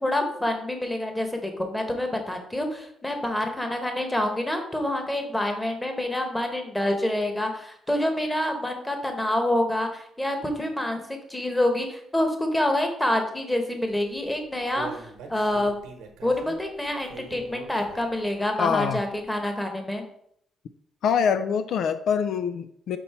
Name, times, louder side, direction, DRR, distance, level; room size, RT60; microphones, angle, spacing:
voice 1, 0.0-11.0 11.3-15.8 16.2-20.0, left 1 dB, 10° left, 4 dB, 1.3 m, -27 dB
Human voice, 14.2-18.3 18.7-18.8 19.3-19.4, right 4 dB, 90° right, 1.1 m, -43 dB
voice 2, 18.6-19.0 21.0-23.0, left 7 dB, 70° left, 11 dB, 0.3 m, -24 dB
5.4 x 4.4 x 4.3 m, 0.69 s
cardioid pair, 90°, 0 cm